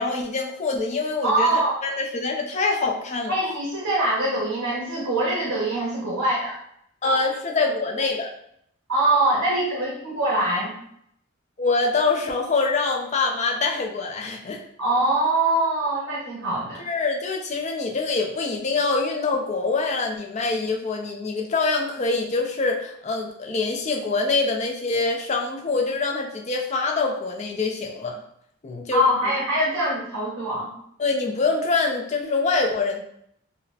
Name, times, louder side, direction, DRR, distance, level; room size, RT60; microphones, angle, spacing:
voice 1, 0.0-3.3 7.0-8.3 11.6-14.6 16.8-28.2 28.6-29.1 31.0-33.0, left 3 dB, 30° left, 1 dB, 0.4 m, -25 dB
voice 2, 1.2-1.8 3.3-6.6 8.9-10.7 14.8-16.8 28.9-30.7, right 1 dB, 80° right, -7 dB, 1.0 m, -23 dB
3.9 x 2.0 x 2.8 m, 0.72 s
head